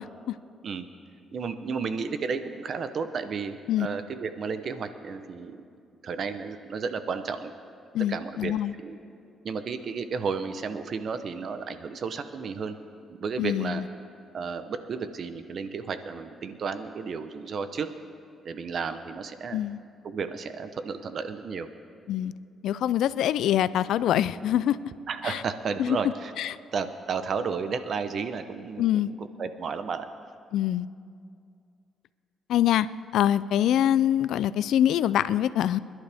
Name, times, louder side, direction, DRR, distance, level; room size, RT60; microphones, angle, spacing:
voice 1, 1.3-5.6 6.0-7.5 8.1-8.5 8.8-9.0 9.4-12.8 13.1-13.8 14.3-17.9 18.4-19.6 20.0-21.7 25.1-26.3 26.7-30.1, right 5 dB, 55° right, 10 dB, 0.8 m, -32 dB
voice 2, 7.9-8.7 13.4-13.8 19.5-19.8 22.1-22.3 22.6-24.8 25.2-25.4 25.8-26.0 26.4-26.6 28.8-29.1 30.5-30.9 32.5-32.9 33.1-35.8, left 11 dB, 80° left, 17 dB, 0.3 m, -24 dB
26.0 x 11.5 x 3.5 m, 2.4 s
cardioid pair, 90°, 0 cm